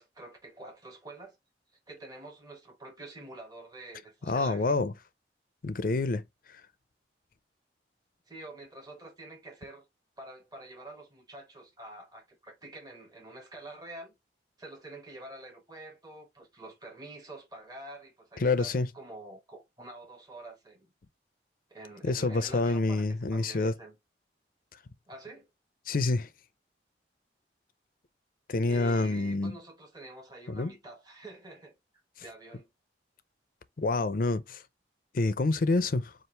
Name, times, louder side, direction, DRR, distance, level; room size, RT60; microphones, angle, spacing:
voice 1, 0.0-1.4 1.9-4.8 8.3-9.8 10.2-14.2 14.6-20.9 21.7-24.0 25.1-25.5 28.6-31.7 32.2-32.7, right 2 dB, 20° right, 1.3 m, -47 dB
voice 2, 4.2-4.9 5.6-6.2 18.4-18.9 22.0-23.7 25.9-26.3 28.5-29.5 30.5-30.7 33.8-34.6 35.1-36.1, left 3 dB, 50° left, 0.5 m, -27 dB
5.6 x 2.5 x 3.1 m
head